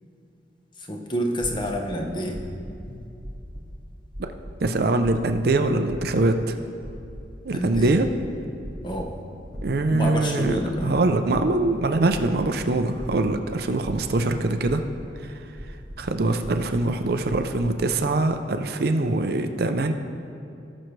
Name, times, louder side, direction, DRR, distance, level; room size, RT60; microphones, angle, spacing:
voice 1, 0.8-2.5 2.9-3.1 7.5-8.0 8.8-9.2 9.9-11.0 11.6-11.7, equal, 25° left, 1 dB, 0.9 m, -28 dB
sound 1, 1.4-1.8 2.3-2.8 3.2-3.8 4.1-4.6 5.0-5.5 5.9-6.3 6.8-7.3 7.7-8.2 8.6-9.1 9.5-10.1 10.4-10.9 11.3-12.5 13.0-13.4 13.8-14.4 14.6-15.1 15.5-16.0 16.4-16.9 17.3-17.7, equal, 20° right, 1.1 m, -38 dB
voice 2, 4.6-6.6 7.4-8.1 9.6-14.8 16.0-19.9, right 2 dB, 60° right, 7 dB, 0.5 m, -23 dB
17.5 x 6.3 x 3.2 m, 2.7 s
head